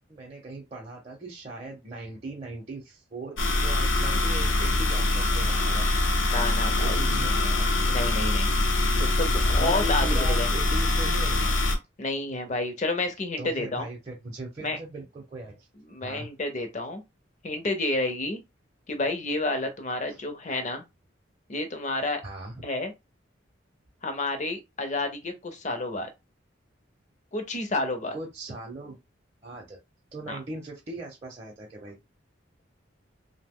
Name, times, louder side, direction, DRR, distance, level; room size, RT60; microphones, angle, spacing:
voice 1, 0.1-5.9 6.8-8.3 9.6-11.6 13.4-15.7 16.0-16.3 20.1-20.2 22.2-22.5 28.1-29.0 29.4-29.8 30.1-32.0, right 2 dB, 30° right, 0.7 m, -39 dB
sound 1, 3.4-11.8, left 2 dB, 80° left, 0.7 m, -24 dB
voice 2, 6.3-7.0 7.9-10.5 12.0-13.9 14.6-14.8 15.9-17.0 17.4-18.4 18.9-20.8 21.5-22.2 22.6-22.9 24.0-26.1 27.3-28.2 30.3-30.4, left 2 dB, 40° left, 0.6 m, -30 dB
2.7 x 2.1 x 3.5 m
head